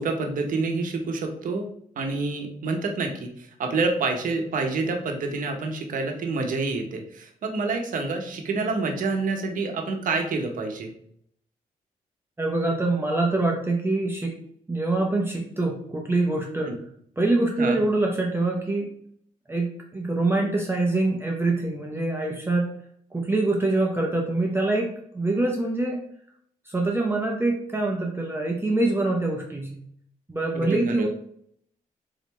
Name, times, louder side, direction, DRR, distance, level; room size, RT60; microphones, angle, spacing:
voice 1, 0.0-10.9 16.6-16.7 17.6-17.8 30.5-31.1, right 3 dB, 70° right, 4 dB, 0.9 m, -28 dB
voice 2, 12.4-14.4 14.7-16.8 17.2-18.9 19.5-22.7 23.1-26.0 26.7-29.8 30.3-31.1, right 2 dB, 15° right, 0 dB, 0.7 m, -25 dB
3.8 x 3.4 x 3.2 m, 0.66 s
cardioid pair, 70°, 15 cm